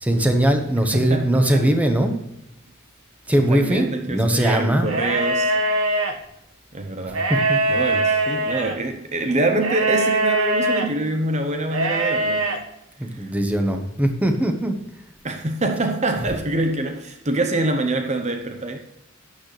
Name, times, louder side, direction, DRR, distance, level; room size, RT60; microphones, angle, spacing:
voice 1, 0.0-2.2 3.3-4.9 7.3-7.6 13.0-14.7, right 1 dB, 5° right, 5 dB, 1.1 m, -20 dB
voice 2, 0.9-1.7 3.3-5.5 6.7-7.3 7.7-12.6 13.1-13.3 15.2-18.8, right 2 dB, 35° right, 5 dB, 0.9 m, -25 dB
sound 1, 4.8-6.1 7.1-8.8 9.6-10.9 11.7-12.6, right 2 dB, 80° right, 1.5 m, -22 dB
12.0 x 9.5 x 3.3 m, 0.83 s
head